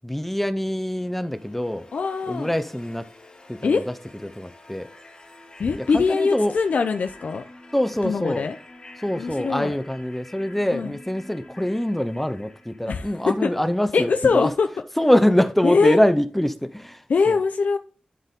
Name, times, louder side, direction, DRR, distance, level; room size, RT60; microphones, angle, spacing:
voice 1, 0.0-1.9 2.3-3.1 3.5-3.9 4.2-4.9 5.8-6.5 7.7-8.5 9.0-14.5 15.0-17.4, left 1 dB, 5° left, 10 dB, 0.6 m, -24 dB
sound 1, 0.9-13.8, left 2 dB, 35° left, 2.2 m, -47 dB
voice 2, 1.9-2.5 3.6-3.8 5.6-7.4 8.0-8.6 9.2-9.7 10.7-11.0 12.9-13.1 13.4-13.5 13.9-14.7 15.6-16.0 17.1-17.8, left 5 dB, 85° left, 7 dB, 0.6 m, -22 dB
11.5 x 4.5 x 3.7 m, 0.41 s
wide cardioid pair, 120°, 3 cm